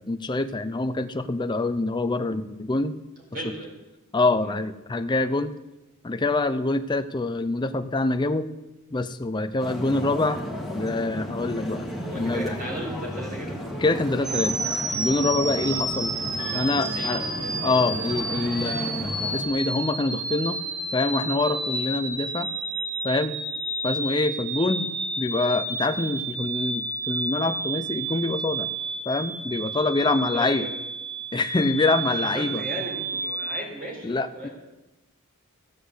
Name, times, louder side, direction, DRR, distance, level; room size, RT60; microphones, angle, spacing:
voice 1, 0.1-3.0 3.4-3.5 4.1-5.5 6.0-8.5 8.9-10.4 10.7-11.9 12.1-12.6 13.8-14.6 14.9-16.1 16.5-17.2 17.6-20.6 20.9-22.5 23.0-23.4 23.8-24.9 25.2-28.7 29.1-30.7 31.3-32.6 34.0-34.5, left 2 dB, 20° left, 9 dB, 0.5 m, -25 dB
voice 2, 3.3-3.7 12.0-13.6 16.5-16.6 16.9-17.7 30.3-30.8 32.2-34.5, right 1 dB, 40° right, -1 dB, 4.3 m, -36 dB
sound 1, 9.6-19.4, equal, ahead, 2.0 m, -34 dB
sound 2, 13.9-14.2 15.5-26.3, right 1 dB, 80° right, 3.4 m, -44 dB
sound 3, 14.2-33.6, right 2 dB, 20° right, 1.3 m, -31 dB
15.0 x 8.2 x 8.0 m, 1.0 s
head